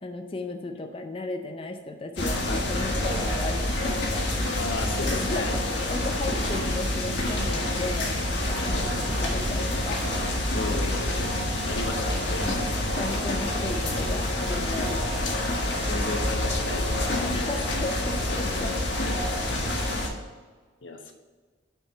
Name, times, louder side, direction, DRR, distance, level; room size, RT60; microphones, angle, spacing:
voice 1, 0.0-4.3 5.0-10.0 12.4-15.4 17.1-18.7, left 2 dB, 30° left, 4 dB, 0.5 m, -35 dB
sound 1, 2.2-20.1, left 1 dB, 65° left, 1.5 m, -27 dB
voice 2, 4.6-5.6 8.5-8.9 10.5-11.3 11.7-12.8 15.9-17.2 18.4-18.5 19.0-19.1 19.5-19.6 20.8-21.1, left 3 dB, 85° left, 4 dB, 1.1 m, -35 dB
6.5 x 4.7 x 5.6 m, 1.4 s
head